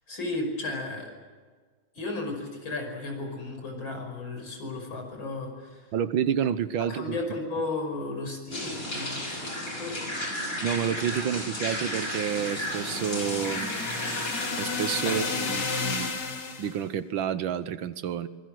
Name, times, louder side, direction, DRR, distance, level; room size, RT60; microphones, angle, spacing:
voice 1, 0.1-1.1 1.9-5.9 6.8-10.2 15.0-15.2, left 2 dB, 75° left, 3 dB, 6.3 m, -34 dB
voice 2, 5.9-7.2 10.6-13.7 14.6-16.1 16.6-18.3, right 8 dB, 80° right, 13 dB, 1.7 m, -29 dB
sound 1, 8.5-16.1, left 1 dB, 40° left, 6.1 m, -34 dB
sound 2, 11.9-16.8, left 5 dB, 60° left, 2.4 m, -33 dB
25.0 x 20.5 x 7.8 m, 1.5 s
omnidirectional pair, 2.2 m